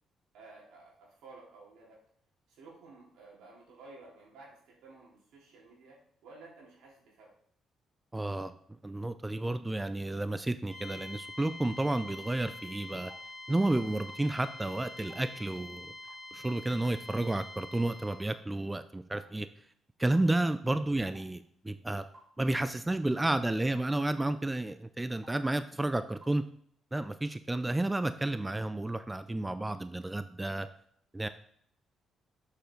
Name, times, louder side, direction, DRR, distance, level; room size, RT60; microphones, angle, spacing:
voice 1, 0.3-2.0 2.5-7.3, right 3 dB, 85° right, -4 dB, 3.6 m, -54 dB
voice 2, 8.1-13.1 13.5-15.9 16.3-19.5 20.0-22.0 22.4-26.4 26.9-30.7 31.1-31.3, right 2 dB, 15° right, 11 dB, 0.4 m, -31 dB
sound 1, 10.7-18.4, left 1 dB, 10° left, 2.1 m, -46 dB
sound 2, 12.1-12.2 13.1-13.3 14.1-14.2 15.1-15.3 16.1-16.3 17.1-17.3 18.1-18.2 19.1-19.3 20.1-20.3 21.1-21.3 22.1-22.3 23.2-23.4 24.2-24.4 25.2-25.4 26.2-26.4, right 1 dB, 30° right, 2.9 m, -56 dB
7.0 x 6.9 x 3.9 m, 0.64 s
cardioid pair, 90°, 0 cm